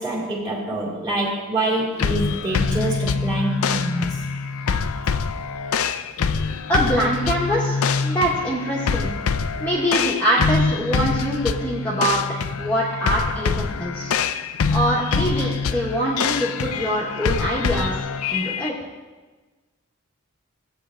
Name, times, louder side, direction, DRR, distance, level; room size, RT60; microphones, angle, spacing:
voice 1, 0.0-4.3, right 1 dB, 20° right, -4 dB, 2.5 m, -26 dB
sound 1, 2.0-18.7, left 5 dB, 80° left, 0.4 m, -25 dB
voice 2, 6.7-9.1 9.6-12.2 12.6-14.1 14.7-17.9 18.3-18.7, right 1 dB, 10° left, -7 dB, 1.2 m, -24 dB
16.5 x 8.5 x 2.5 m, 1.3 s
head